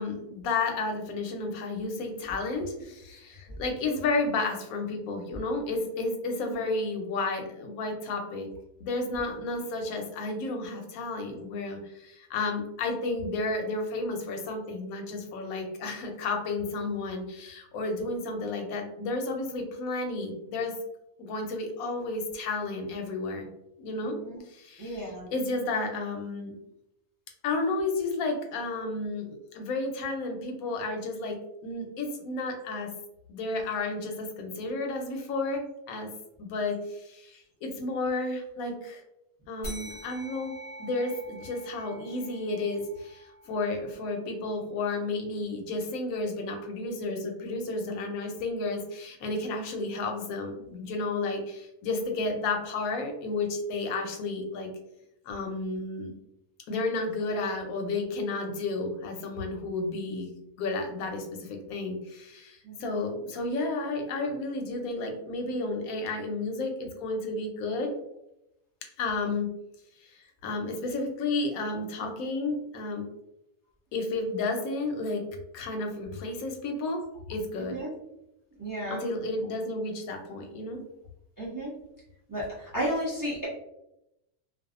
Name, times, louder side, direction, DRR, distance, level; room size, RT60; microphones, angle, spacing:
voice 1, 0.0-8.5 8.8-20.7 21.2-23.5 23.8-24.2 24.5-26.5 27.4-29.3 29.5-32.9 33.3-36.1 36.4-39.0 39.5-40.5 40.8-54.7 55.3-56.1 56.7-67.9 69.0-69.5 70.0-70.1 70.4-73.0 73.9-75.2 75.5-77.0 77.3-77.8 78.9-80.8, left 3 dB, 75° left, 3 dB, 1.0 m, -32 dB
voice 2, 24.8-25.3 62.6-63.0 77.6-77.9 78.6-79.0 81.4-81.7 82.3-83.5, equal, 30° right, -7 dB, 0.4 m, -33 dB
sound 1, 39.6-44.5, equal, 50° left, 0.8 m, -45 dB
2.6 x 2.3 x 2.4 m, 0.84 s
omnidirectional pair, 1.6 m